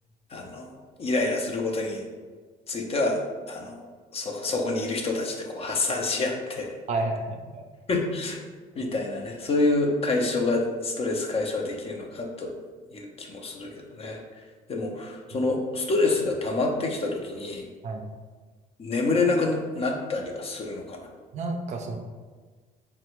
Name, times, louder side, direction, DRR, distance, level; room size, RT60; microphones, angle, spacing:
voice 1, 0.3-2.0 2.7-3.9 4.1-6.7 7.9-8.4 8.8-12.5 12.9-14.2 14.7-17.7 18.8-21.1, left 3 dB, 35° left, 2 dB, 0.5 m, -27 dB
voice 2, 6.9-7.6 17.8-18.0 21.3-22.0, right 2 dB, 45° right, 4 dB, 0.4 m, -30 dB
3.2 x 2.1 x 3.0 m, 1.4 s
cardioid pair, 110°, 17 cm